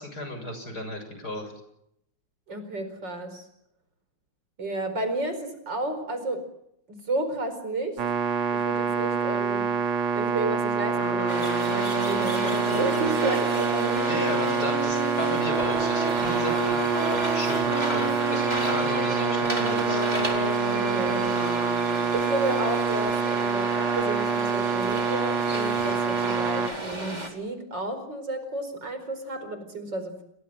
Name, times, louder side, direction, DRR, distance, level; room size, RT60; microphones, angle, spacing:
voice 1, 0.0-1.5 14.1-20.0, left 1 dB, 45° left, 6 dB, 7.8 m, -34 dB
voice 2, 2.5-3.4 4.6-6.4 6.9-8.0 8.5-9.7 10.2-14.1 20.7-21.3 22.1-30.2, right 2 dB, 55° right, 9 dB, 5.3 m, -32 dB
sound 1, 8.0-26.7, right 6 dB, 80° right, 2.7 m, -26 dB
Wind instrument woodwind instrument, 10.9-22.6, equal, 25° left, 5.1 m, -33 dB
sound 2, 11.3-27.3, right 1 dB, 20° right, 4.4 m, -34 dB
30.0 x 21.0 x 7.6 m, 0.77 s
omnidirectional pair, 2.3 m